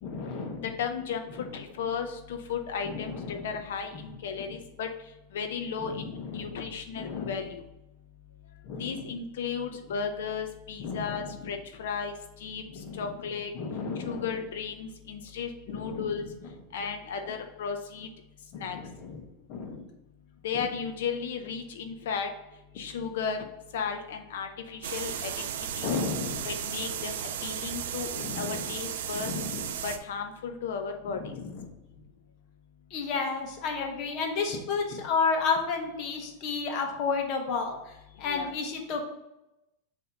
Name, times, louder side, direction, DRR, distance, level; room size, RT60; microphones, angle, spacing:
voice 1, 0.0-0.7 1.4-1.5 2.8-3.5 4.3-4.6 5.8-6.7 7.0-7.4 8.6-9.1 10.8-11.5 12.7-13.0 13.5-14.3 15.7-16.2 17.2-17.3 18.5-19.2 19.5-19.8 20.5-20.6 25.8-26.5 28.1-28.6 29.1-29.7 31.0-31.7 32.9-39.1, left 5 dB, 35° left, 3 dB, 0.9 m, -32 dB
voice 2, 0.8-1.2 1.5-4.9 5.3-6.0 6.3-7.6 8.8-12.1 12.4-12.6 13.0-13.5 14.0-16.2 16.7-18.1 18.5-18.8 20.4-22.3 22.8-23.4 23.7-25.3 25.8-25.9 26.4-27.2 27.4-28.1 28.4-29.3 29.8-31.2 38.3-38.5, left 6 dB, 80° left, 5 dB, 0.6 m, -34 dB
sound 1, 24.8-30.0, right 9 dB, 70° right, 0.5 m, -35 dB
6.9 x 2.7 x 5.3 m, 0.91 s
supercardioid pair, 175°, 0 cm